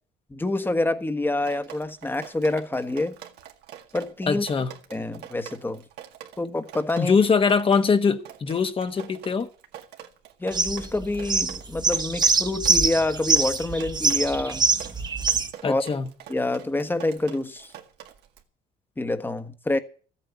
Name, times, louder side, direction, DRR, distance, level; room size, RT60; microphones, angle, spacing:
voice 1, 0.3-3.2 3.9-4.4 4.9-5.8 6.4-7.2 10.4-14.7 15.6-15.8 16.3-17.7 19.0-19.8, left 2 dB, 10° left, 1.3 m, -27 dB
Drip, 1.4-18.4, right 11 dB, 80° right, 1.9 m, -45 dB
voice 2, 4.3-4.7 7.0-9.5 15.6-16.1, left 5 dB, 30° left, 1.3 m, -22 dB
sound 1, 10.5-15.5, right 4 dB, 25° right, 1.3 m, -23 dB
14.0 x 8.6 x 8.1 m
cardioid pair, 110°, 17 cm